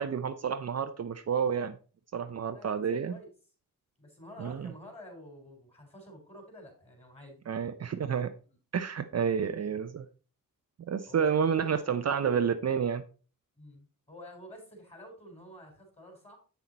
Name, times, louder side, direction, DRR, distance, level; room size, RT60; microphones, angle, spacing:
voice 1, 0.0-1.8 2.1-3.2 4.4-4.7 7.5-8.3 8.7-10.1 10.9-13.0, right 7 dB, 50° right, 0.6 m, -29 dB
voice 2, 2.5-3.3 4.0-7.4 9.6-9.7 11.1-11.7 13.6-16.4, left 1 dB, 20° left, 3.9 m, -50 dB
8.1 x 6.0 x 4.1 m
wide cardioid pair, 125°, 33 cm